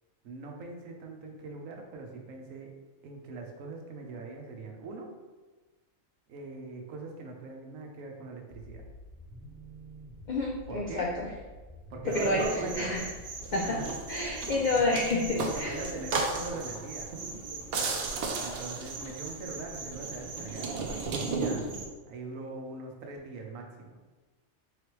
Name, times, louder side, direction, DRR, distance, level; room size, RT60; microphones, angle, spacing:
voice 1, 0.2-2.7 3.0-5.1 6.3-8.8 10.7-11.1 11.9-12.9 13.6-13.9 14.7-17.1 18.4-20.7 21.2-21.6 22.1-24.0, right 3 dB, 85° right, 2 dB, 1.1 m, -42 dB
sound 1, 8.5-16.5, equal, 20° right, 1.0 m, -49 dB
voice 2, 10.3-11.3 12.1-13.1 13.5-13.8 14.1-15.8, left 2 dB, 80° left, -1 dB, 0.4 m, -29 dB
sound 2, 12.1-21.9, right 3 dB, 60° right, 0.7 m, -35 dB
4.0 x 3.2 x 3.0 m, 1.3 s
omnidirectional pair, 1.3 m